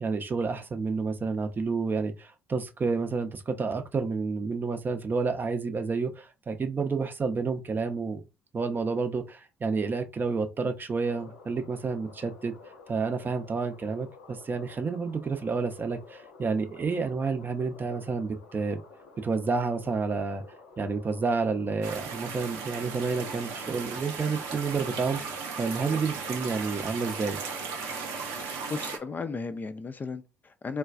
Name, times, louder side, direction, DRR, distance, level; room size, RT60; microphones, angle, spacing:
voice 1, 0.0-8.2 8.5-12.5 12.9-18.8 19.2-20.4 20.8-25.3 25.6-27.4, right 4 dB, 30° right, 0.6 m, -30 dB
sound 1, 11.0-29.1, left 4 dB, 80° left, 0.7 m, -51 dB
sound 2, 21.8-29.0, right 5 dB, 70° right, 0.6 m, -36 dB
voice 2, 28.4-30.8, left 4 dB, 30° left, 0.3 m, -36 dB
3.3 x 2.2 x 2.4 m
figure-of-eight pair, 50°, 6 cm